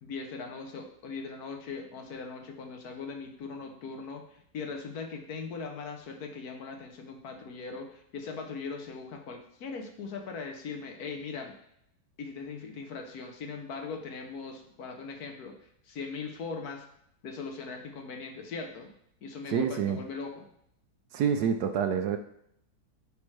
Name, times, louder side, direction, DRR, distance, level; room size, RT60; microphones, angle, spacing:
voice 1, 0.0-11.5 12.2-16.9 17.2-18.9 19.2-20.5, left 4 dB, 65° left, 4 dB, 1.2 m, -40 dB
voice 2, 19.5-20.0 21.1-22.2, right 7 dB, 70° right, 7 dB, 1.0 m, -27 dB
8.5 x 4.9 x 3.2 m, 0.72 s
omnidirectional pair, 1.9 m